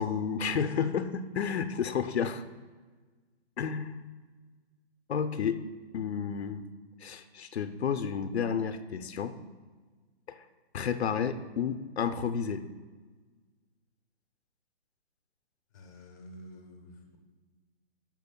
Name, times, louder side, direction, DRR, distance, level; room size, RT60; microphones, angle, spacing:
voice 1, 0.0-2.4 3.6-4.0 5.1-5.6 5.9-6.7 7.0-9.4 10.3-10.4 10.7-12.7, left 7 dB, 75° left, 9 dB, 0.6 m, -31 dB
voice 2, 15.7-17.2, equal, 15° left, 2 dB, 0.7 m, -49 dB
15.5 x 6.1 x 2.2 m, 1.4 s
hypercardioid pair, 175°, 33 cm